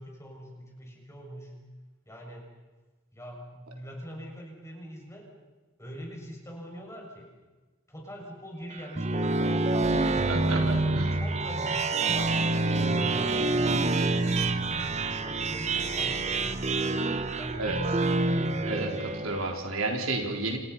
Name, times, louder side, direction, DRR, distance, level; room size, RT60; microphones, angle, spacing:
voice 1, 0.0-1.5 2.1-2.5 3.1-5.3 5.8-7.3 7.9-9.5 10.0-11.7 12.0-12.4 12.8-16.7 17.4-17.9, equal, 15° left, 0 dB, 6.5 m, -43 dB
sound 1, 8.7-19.6, right 2 dB, 30° right, 1.1 m, -27 dB
voice 2, 10.3-11.2 17.6-17.8 18.6-20.6, right 2 dB, 75° right, 1 dB, 4.3 m, -31 dB
30.0 x 28.0 x 5.8 m, 1.3 s
head